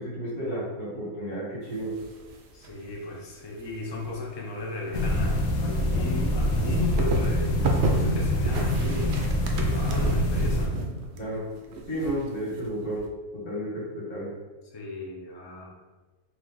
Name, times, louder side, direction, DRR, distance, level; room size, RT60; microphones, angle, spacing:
voice 1, 0.0-1.9 11.2-11.5 11.9-13.0 13.3-14.3, right 1 dB, 80° left, -6 dB, 2.0 m, -32 dB
sound 1, 1.6-3.0 3.3-13.1, right 3 dB, 65° right, 0.6 m, -32 dB
voice 2, 2.5-10.8 14.7-15.8, left 2 dB, 35° left, -3 dB, 0.4 m, -36 dB
sound 2, 4.9-10.7, left 1 dB, 65° left, 0.9 m, -25 dB
3.3 x 3.1 x 3.9 m, 1.3 s
omnidirectional pair, 1.6 m